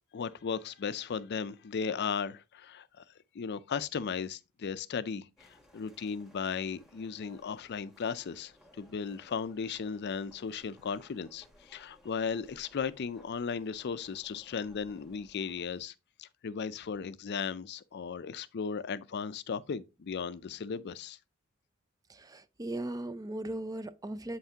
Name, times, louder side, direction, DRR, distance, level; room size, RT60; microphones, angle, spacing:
voice 1, 0.1-3.0 3.3-15.9 16.2-21.2, left 6 dB, 50° left, 0.4 m, -36 dB
sound 1, 5.4-15.8, equal, ahead, 1.2 m, -61 dB
voice 2, 22.1-24.4, right 1 dB, 15° right, 0.4 m, -38 dB
8.2 x 5.7 x 2.8 m
head